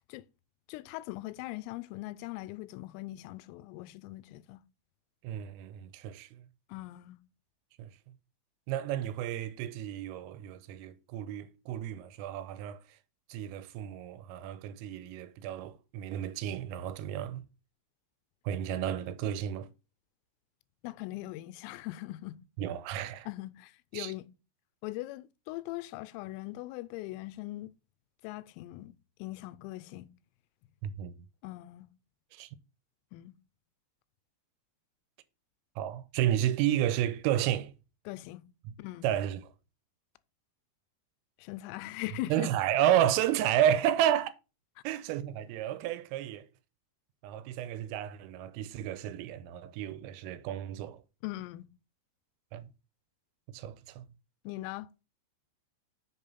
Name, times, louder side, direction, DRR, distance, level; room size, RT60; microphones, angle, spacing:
voice 1, 0.7-4.6 6.7-7.2 20.8-22.4 23.3-24.3 24.8-27.7 28.2-28.9 29.2-30.1 31.4-31.9 33.1-33.4 38.1-38.5 38.8-39.1 41.4-42.5 51.2-51.7 54.5-54.9, left 18 dB, 85° left, 3.1 m, -40 dB
voice 2, 5.2-6.4 7.8-7.9 8.7-12.8 13.3-17.4 18.5-19.7 22.6-23.3 23.9-24.1 30.8-31.1 32.3-32.5 35.8-37.7 39.0-39.4 42.3-44.3 44.8-46.4 47.2-51.0 52.5-52.7 53.5-54.0, right 11 dB, 90° right, 3.3 m, -31 dB
6.9 x 5.5 x 5.4 m
omnidirectional pair, 5.9 m